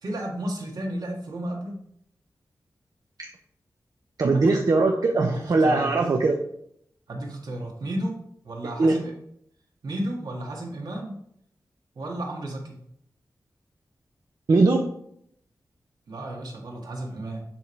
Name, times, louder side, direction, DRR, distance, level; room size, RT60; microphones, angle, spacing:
voice 1, 0.0-1.8 4.3-4.5 5.2-5.9 7.1-8.1 8.4-9.1 9.8-11.1 12.0-12.8 16.1-17.4, right 1 dB, 80° right, -1 dB, 2.1 m, -33 dB
voice 2, 4.2-6.4 8.8-9.0 14.5-14.9, right 3 dB, 60° right, 2 dB, 0.8 m, -20 dB
10.5 x 3.7 x 4.6 m, 0.70 s
wide cardioid pair, 115°, 7 cm